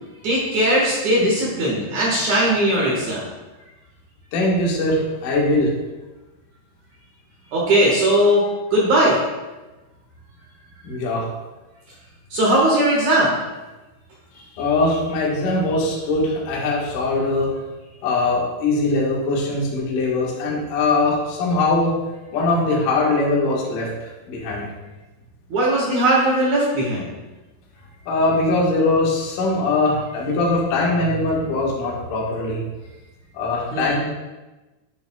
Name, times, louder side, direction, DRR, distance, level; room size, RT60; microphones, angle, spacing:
voice 1, 0.2-3.2 7.5-8.4 8.7-9.2 12.3-13.3 25.5-27.0 33.7-34.0, right 1 dB, 60° right, -5 dB, 2.1 m, -18 dB
voice 2, 4.3-5.7 10.8-11.3 14.3-17.6 18.0-22.0 22.3-24.7 28.1-32.6 33.3-34.0, left 2 dB, 60° left, -3 dB, 2.3 m, -21 dB
10.5 x 7.8 x 2.3 m, 1.1 s
omnidirectional pair, 5.5 m